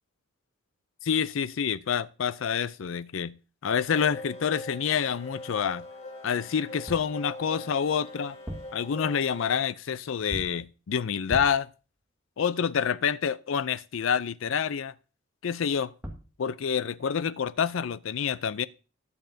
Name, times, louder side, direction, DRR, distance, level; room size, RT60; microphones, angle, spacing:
voice 1, 1.0-3.4 3.6-5.8 6.2-8.4 8.7-11.7 12.4-14.9 15.4-15.9 16.4-18.6, left 7 dB, 70° left, 0.4 m, -27 dB
sound 1, 3.9-9.7, left 2 dB, 35° left, 2.5 m, -43 dB
sound 2, 6.9-7.2 8.3-8.8 10.3-10.7 11.3-11.7 15.7-15.8 16.0-16.4, equal, 10° right, 1.6 m, -39 dB
20.0 x 7.0 x 2.7 m
head